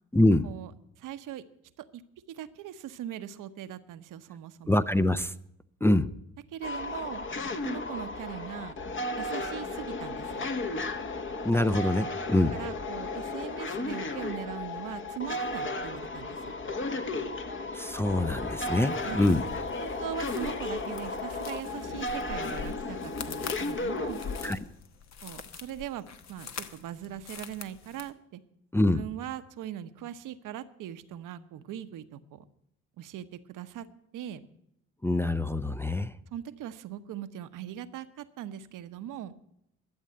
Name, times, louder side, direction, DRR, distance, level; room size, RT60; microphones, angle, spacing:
voice 1, 0.1-0.5 4.7-5.3 5.8-6.1 11.4-12.5 17.7-19.4 24.4-24.6 28.7-29.0 35.0-36.1, left 1 dB, 5° left, 10 dB, 0.5 m, -25 dB
voice 2, 1.0-1.4 1.8-2.0 2.3-4.7 6.5-7.2 7.6-8.8 9.2-10.4 12.5-16.5 19.0-19.3 19.8-24.2 25.2-28.4 28.9-32.4 33.0-33.9 34.1-34.4 36.3-39.3, right 11 dB, 65° right, 11 dB, 1.0 m, -40 dB
sound 1, 6.6-24.5, left 2 dB, 35° left, 1.3 m, -34 dB
sound 2, 18.5-28.1, left 6 dB, 50° left, 1.2 m, -44 dB
12.5 x 7.4 x 8.6 m, 0.78 s
supercardioid pair, 60°, 33 cm